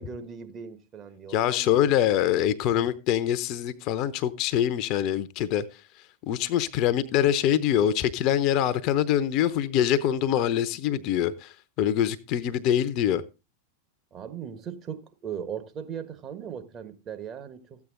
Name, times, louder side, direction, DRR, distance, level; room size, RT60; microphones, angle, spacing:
voice 1, 0.0-1.8 14.1-17.8, right 7 dB, 30° right, 1.5 m, -38 dB
voice 2, 1.3-5.6 6.2-13.2, left 10 dB, 40° left, 0.8 m, -24 dB
14.0 x 8.4 x 3.8 m
figure-of-eight pair, 90°, 0 cm